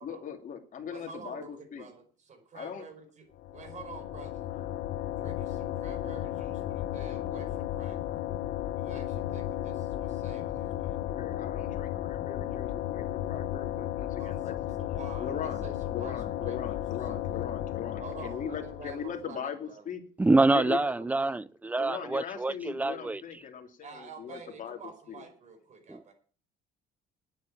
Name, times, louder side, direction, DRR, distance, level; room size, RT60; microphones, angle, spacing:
voice 1, 0.0-1.9 2.5-2.8 4.8-4.9 11.0-14.5 15.2-15.6 15.9-20.0 20.5-21.1 21.8-25.2, left 8 dB, 50° left, 2.9 m, -40 dB
voice 2, 0.9-3.3 3.5-4.5 5.2-8.2 8.8-11.0 14.2-17.2 18.0-19.9 20.5-21.4 23.8-26.1, right 5 dB, 45° right, 4.9 m, -48 dB
sound 1, 3.4-19.2, left 13 dB, 75° left, 1.0 m, -34 dB
voice 3, 20.2-23.2 25.9-26.1, right 2 dB, 10° right, 0.5 m, -26 dB
9.5 x 9.2 x 8.7 m
cardioid pair, 110°, 17 cm